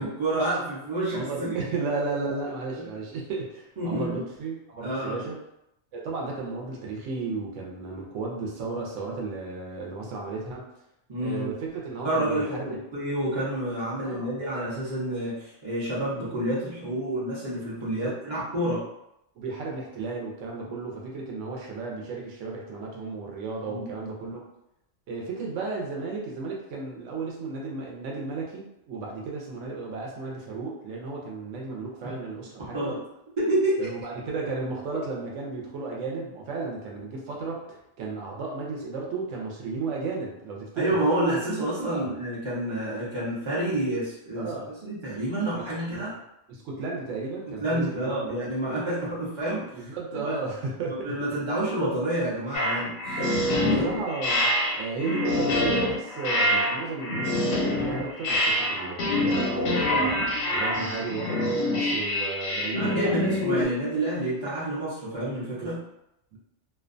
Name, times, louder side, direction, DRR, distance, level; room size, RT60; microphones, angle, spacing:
voice 1, 0.0-1.6 2.7-2.8 3.8-4.2 4.8-5.3 11.1-11.5 12.0-18.8 20.6-20.7 23.7-23.8 32.7-33.0 33.4-33.9 40.8-46.1 47.5-50.4 50.9-53.2 53.6-54.0 60.7-61.1 62.7-65.8, right 1 dB, 35° right, -9 dB, 0.5 m, -29 dB
voice 2, 1.1-5.4 5.9-10.6 11.2-12.8 14.0-14.4 18.0-18.2 19.4-24.4 25.1-32.9 33.8-41.0 41.8-42.1 44.4-44.7 45.6-46.1 46.5-48.3 49.7-51.1 53.2-60.2 60.5-63.5 65.6-65.7 66.3-66.4, right 4 dB, 75° right, -2 dB, 0.9 m, -34 dB
sound 1, 52.5-63.7, left 1 dB, 85° left, 1.0 m, -26 dB
2.5 x 2.2 x 2.5 m, 0.82 s
omnidirectional pair, 1.3 m